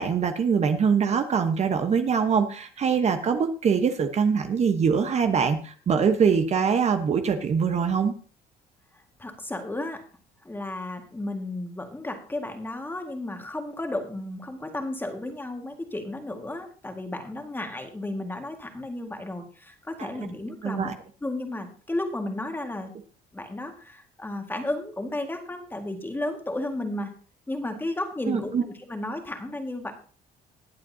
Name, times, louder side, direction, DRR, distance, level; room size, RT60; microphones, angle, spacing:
voice 1, 0.0-8.1 20.0-20.1 20.6-20.9 28.3-28.6, right 6 dB, 40° right, 7 dB, 1.1 m, -23 dB
voice 2, 9.2-10.0 10.4-20.9 21.2-22.9 23.3-27.1 27.5-29.9, left 1 dB, 10° left, 4 dB, 1.9 m, -33 dB
20.5 x 7.5 x 2.8 m, 0.40 s
cardioid pair, 110°, 17 cm